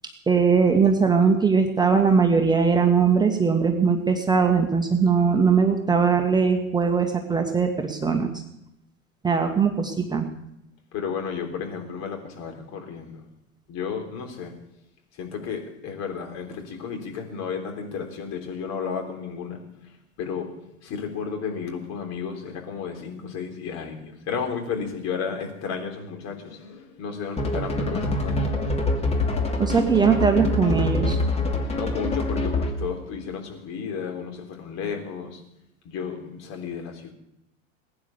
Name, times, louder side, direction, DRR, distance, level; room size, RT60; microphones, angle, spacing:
voice 1, 0.3-8.3 9.2-10.2 29.6-31.2, right 5 dB, 10° right, 1.6 m, -20 dB
voice 2, 10.9-13.2 13.7-14.7 15.1-28.8 31.7-35.5 35.8-37.1, left 6 dB, 40° left, 3.6 m, -33 dB
sound 1, 27.4-32.9, left 2 dB, 15° left, 2.6 m, -25 dB
21.0 x 9.6 x 6.9 m
figure-of-eight pair, 85°, 41 cm